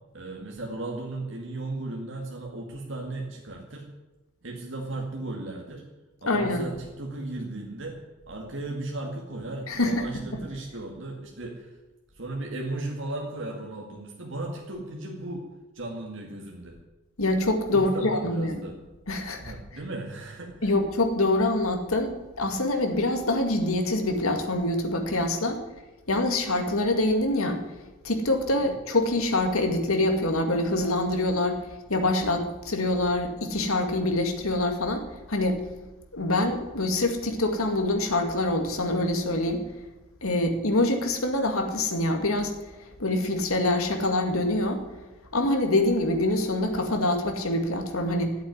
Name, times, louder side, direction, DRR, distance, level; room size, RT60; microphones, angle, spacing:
voice 1, 0.1-3.9 4.4-5.8 6.2-8.0 8.3-11.7 12.1-15.5 15.7-16.8 17.7-18.8 19.4-20.7 28.6-28.7, right 2 dB, 60° right, -1 dB, 2.2 m, -36 dB
voice 2, 6.3-6.6 9.7-10.2 17.2-18.6 19.1-19.5 20.6-25.6 26.1-27.6 28.0-31.6 31.9-35.6 36.1-39.7 40.2-42.6 43.0-44.8 45.3-48.4, left 1 dB, 85° left, 5 dB, 2.2 m, -25 dB
14.5 x 8.3 x 9.7 m, 1.1 s
head